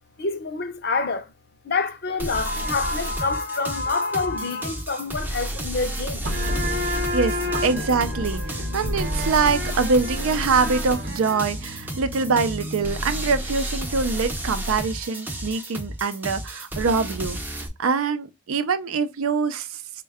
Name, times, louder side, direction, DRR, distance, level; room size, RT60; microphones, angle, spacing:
voice 1, 0.2-1.3 1.6-6.2, left 3 dB, 50° left, 0.6 m, -27 dB
sound 1, 2.2-17.7, right 1 dB, 10° right, 0.5 m, -32 dB
sound 2, 6.2-13.5, left 1 dB, 50° right, 0.7 m, -30 dB
voice 2, 7.1-17.4 17.8-19.8, right 4 dB, 85° right, 0.5 m, -24 dB
4.3 x 2.2 x 3.4 m
head